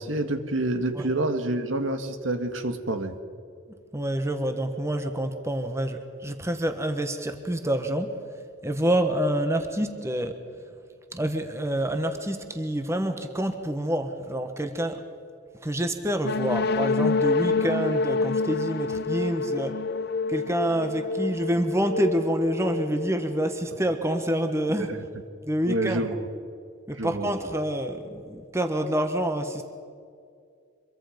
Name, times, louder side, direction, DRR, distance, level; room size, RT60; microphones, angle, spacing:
voice 1, 0.0-3.1 17.5-17.6 24.8-24.9 25.7-26.3 27.0-27.3, right 2 dB, 75° right, 7 dB, 1.8 m, -28 dB
voice 2, 3.9-8.1 8.6-10.4 11.1-15.0 15.6-19.8 20.3-24.9 25.4-26.1 26.9-29.7, right 1 dB, 15° right, 7 dB, 1.3 m, -27 dB
sound 1, 16.2-23.9, left 4 dB, 55° left, 0.5 m, -28 dB
25.5 x 22.5 x 5.2 m, 2.4 s
head